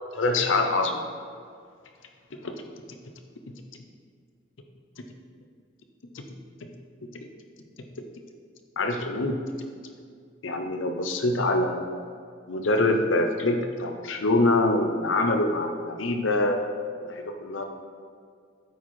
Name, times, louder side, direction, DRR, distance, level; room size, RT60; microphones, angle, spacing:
voice 1, 0.1-1.0 2.4-2.7 6.1-6.2 8.8-9.4 10.4-12.1 12.5-16.6 17.0-17.6, left 2 dB, 90° left, 5 dB, 0.8 m, -25 dB
9.1 x 4.5 x 4.2 m, 2.2 s
head